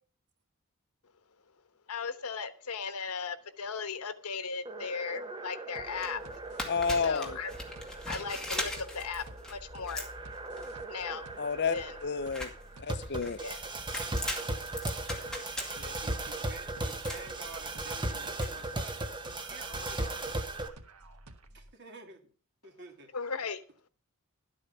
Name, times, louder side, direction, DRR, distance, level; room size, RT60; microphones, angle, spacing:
voice 1, 1.9-6.3 6.9-7.5 8.1-10.0 10.9-11.4 11.7-12.0 13.4-13.6 23.1-23.6, left 5 dB, 85° left, 1.1 m, -37 dB
sound 1, 4.7-20.7, right 2 dB, 20° right, 1.2 m, -38 dB
sound 2, 5.8-18.5, left 1 dB, 5° left, 2.2 m, -41 dB
sound 3, 5.8-21.7, right 1 dB, 85° right, 1.4 m, -54 dB
voice 2, 6.7-7.4 11.4-11.7 12.0-12.5 12.8-13.4, left 5 dB, 50° left, 0.6 m, -30 dB
voice 3, 15.7-19.0 19.4-20.5 21.5-22.3 22.6-23.1, right 3 dB, 50° right, 2.4 m, -50 dB
12.0 x 8.7 x 5.5 m
head